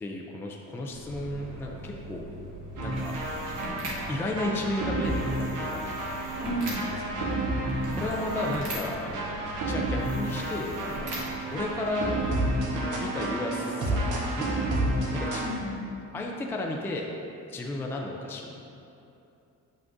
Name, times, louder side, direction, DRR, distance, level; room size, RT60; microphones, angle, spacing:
voice 1, 0.0-2.3 2.8-3.2 4.1-5.8 7.9-9.1 9.7-11.1 11.5-12.2 13.0-14.5 15.1-15.5 16.1-17.1 17.5-18.5, left 2 dB, 10° left, 0 dB, 0.3 m, -33 dB
sound 1, 0.9-12.8, right 1 dB, 55° right, 1.5 m, -40 dB
sound 2, 2.8-15.5, right 1 dB, 70° right, 1.1 m, -31 dB
voice 2, 6.4-7.4 15.4-16.1, equal, 75° left, 0 dB, 0.9 m, -34 dB
7.8 x 5.9 x 2.5 m, 2.8 s
cardioid pair, 170°, 32 cm